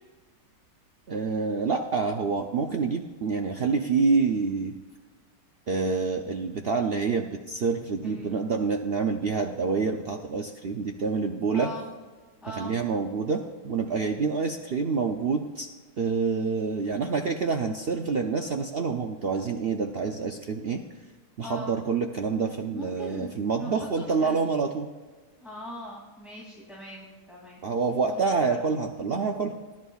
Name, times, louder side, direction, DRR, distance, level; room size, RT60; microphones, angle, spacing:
voice 1, 1.1-4.7 5.7-11.7 12.6-15.7 16.0-20.8 21.4-24.9 27.6-29.5, right 4 dB, 85° right, 3 dB, 0.5 m, -27 dB
voice 2, 8.0-8.4 11.5-11.8 12.4-12.7 21.4-21.7 22.7-24.4 25.4-27.6 28.0-28.6, left 1 dB, ahead, -7 dB, 2.5 m, -41 dB
19.5 x 11.0 x 2.4 m, 1.3 s
omnidirectional pair, 1.9 m